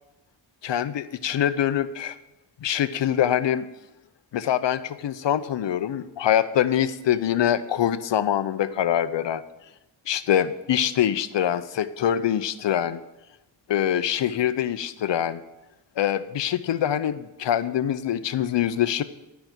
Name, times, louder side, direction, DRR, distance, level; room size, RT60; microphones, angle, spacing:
voice 1, 0.6-2.2 2.6-3.6 4.3-9.4 10.1-13.0 13.7-15.4 16.0-19.0, left 10 dB, 75° left, 13 dB, 0.7 m, -24 dB
11.5 x 5.9 x 8.0 m, 0.97 s
wide cardioid pair, 150°, 44 cm